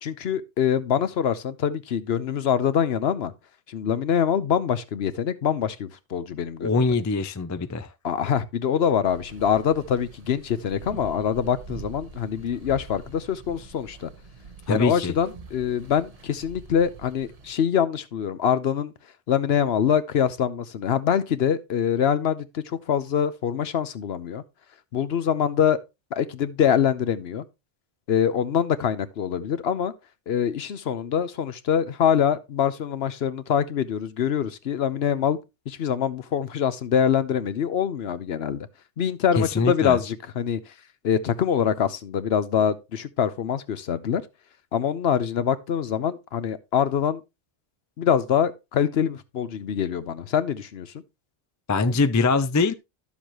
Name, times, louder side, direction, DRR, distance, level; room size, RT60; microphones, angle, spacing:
voice 1, 0.0-3.3 3.7-6.9 8.0-14.1 14.7-18.9 19.3-24.4 24.9-25.8 26.1-27.4 28.1-29.9 30.3-35.4 35.7-38.7 39.0-40.6 41.0-44.2 44.7-47.2 48.0-50.9, left 8 dB, 65° left, 1.0 m, -24 dB
voice 2, 6.6-7.9 14.7-15.1 39.4-40.0 51.7-52.7, left 4 dB, 30° left, 0.3 m, -23 dB
sound 1, 9.0-17.5, right 4 dB, 35° right, 1.0 m, -44 dB
11.5 x 7.1 x 3.0 m
omnidirectional pair, 1.2 m